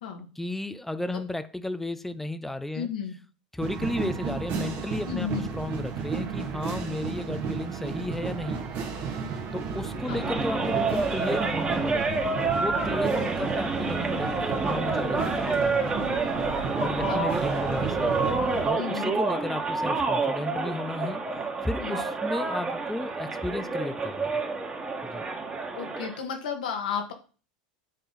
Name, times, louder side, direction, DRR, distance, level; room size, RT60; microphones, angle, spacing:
voice 1, 0.4-2.9 3.5-8.6 9.5-12.2 12.6-15.9 16.8-18.1 18.6-21.2 21.6-24.3 25.0-25.2, left 1 dB, 5° left, 0.6 m, -33 dB
voice 2, 2.7-3.1 5.1-5.5 10.1-10.3 13.2-13.3 17.1-17.3 18.8-19.2 21.8-22.0 25.7-27.1, left 7 dB, 75° left, 1.8 m, -33 dB
sound 1, 3.6-18.7, right 5 dB, 50° right, 1.7 m, -33 dB
sound 2, 10.0-26.2, right 3 dB, 25° right, 1.9 m, -28 dB
9.2 x 3.8 x 4.1 m
hypercardioid pair, 90°, 4 cm